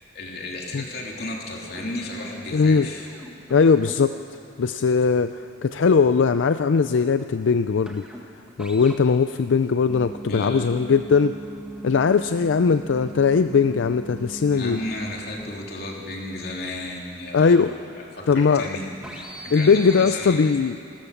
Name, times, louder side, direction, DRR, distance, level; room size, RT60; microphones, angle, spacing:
voice 1, 0.1-3.1 10.3-10.7 14.5-17.6 18.0-20.5, left 2 dB, 55° left, -1 dB, 3.3 m, -34 dB
sound 1, 0.7-1.1 1.4-18.5 18.9-20.2, right 1 dB, 5° right, 1.6 m, -41 dB
voice 2, 2.5-2.9 3.5-4.2 4.6-8.0 8.6-11.3 11.8-14.8 17.3-17.7 18.3-18.6 19.5-20.8, left 5 dB, 85° left, 10 dB, 0.4 m, -19 dB
28.5 x 13.5 x 7.1 m, 2.6 s
head